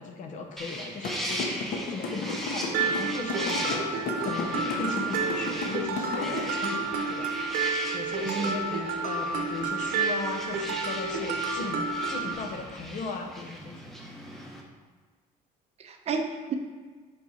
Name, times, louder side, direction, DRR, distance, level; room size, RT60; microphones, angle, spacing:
voice 1, 0.0-7.3 7.9-13.8, left 3 dB, 50° left, 4 dB, 0.8 m, -37 dB
sound 1, 0.6-14.6, equal, ahead, 0.8 m, -38 dB
sound 2, 1.0-6.4, left 4 dB, 70° left, 1.2 m, -33 dB
Mallet percussion, 2.7-12.3, right 4 dB, 75° right, 0.9 m, -30 dB
voice 2, 8.2-8.9 15.8-16.5, right 4 dB, 40° right, 4 dB, 0.7 m, -32 dB
5.9 x 5.4 x 4.3 m, 1.4 s
cardioid pair, 160°, 16 cm